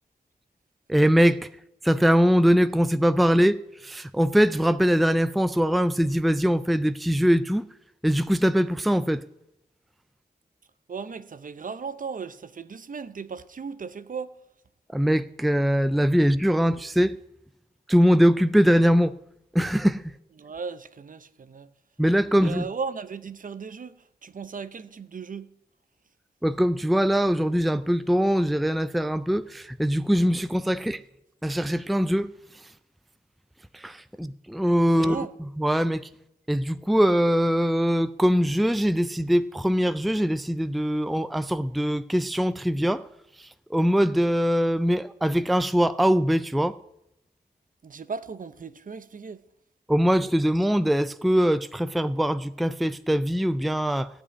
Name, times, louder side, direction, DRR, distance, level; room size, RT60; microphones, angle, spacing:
voice 1, 0.9-1.5 1.8-7.7 8.0-9.2 14.9-17.2 17.9-19.1 19.5-20.1 22.0-22.6 26.4-31.0 31.4-32.3 33.7-35.3 35.6-36.1 36.5-43.0 43.4-46.7 49.9-54.1, equal, ahead, 0.4 m, -22 dB
voice 2, 10.9-14.4 20.4-21.7 22.3-25.6 35.0-35.3 47.8-49.4, right 5 dB, 55° right, 0.7 m, -36 dB
15.0 x 5.6 x 9.7 m
wide cardioid pair, 95°, 16 cm